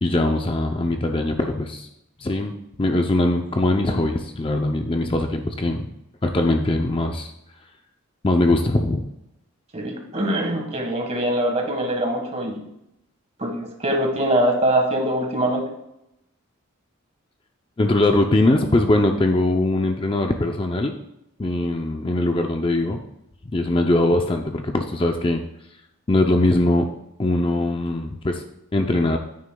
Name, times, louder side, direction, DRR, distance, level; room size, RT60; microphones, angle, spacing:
voice 1, 0.0-1.9 2.2-2.5 2.8-5.9 6.2-7.3 8.2-9.0 17.8-20.9 21.4-23.0 23.5-25.4 26.1-26.9 27.2-28.4 28.7-29.2, left 2 dB, 25° left, 4 dB, 0.5 m, -21 dB
voice 2, 9.7-12.6 13.4-15.7, right 1 dB, 30° right, 2 dB, 1.5 m, -23 dB
9.4 x 9.4 x 2.3 m, 0.83 s
head